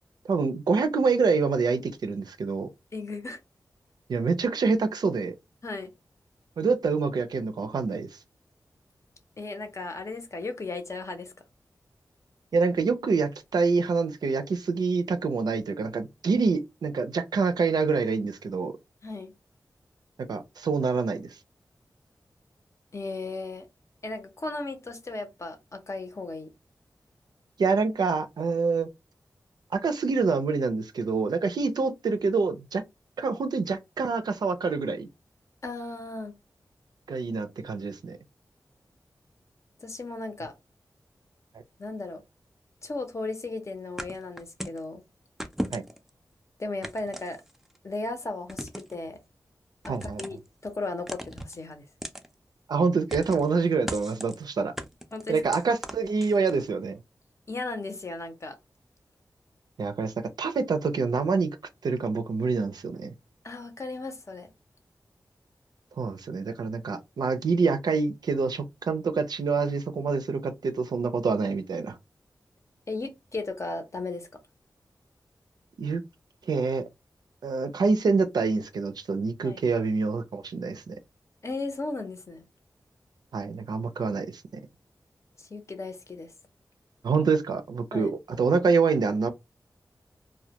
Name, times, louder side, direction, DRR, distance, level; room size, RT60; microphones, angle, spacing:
voice 1, 0.3-2.7 4.1-5.4 6.6-8.1 12.5-18.7 20.3-21.3 27.6-28.9 29.7-32.8 33.2-35.1 37.1-38.2 45.7-45.8 49.9-50.2 52.7-54.7 55.3-57.0 59.8-60.1 60.4-61.6 61.8-63.1 66.0-72.0 75.8-76.0 76.5-76.8 77.4-81.0 83.3-84.4 87.0-89.3, right 4 dB, 80° right, 0.4 m, -26 dB
voice 2, 2.9-3.4 5.6-5.9 9.4-11.3 19.0-19.3 22.9-23.7 24.0-26.5 35.6-36.3 39.8-40.5 41.8-42.2 42.8-45.0 46.6-47.4 47.8-49.2 49.8-50.4 50.6-51.9 55.1-55.4 57.5-58.6 63.4-64.5 72.9-74.4 79.4-79.6 81.4-82.5 85.4-86.3 87.9-88.1, left 3 dB, 45° left, 0.6 m, -35 dB
sound 1, 44.0-44.8 45.4-46.1 46.8-47.8 48.5-49.0 49.8-50.5 51.1-51.6 52.0-52.3 53.1-53.5 53.9-54.4 54.8-56.6, equal, 5° right, 0.4 m, -37 dB
2.1 x 2.1 x 2.7 m
wide cardioid pair, 75°, 7 cm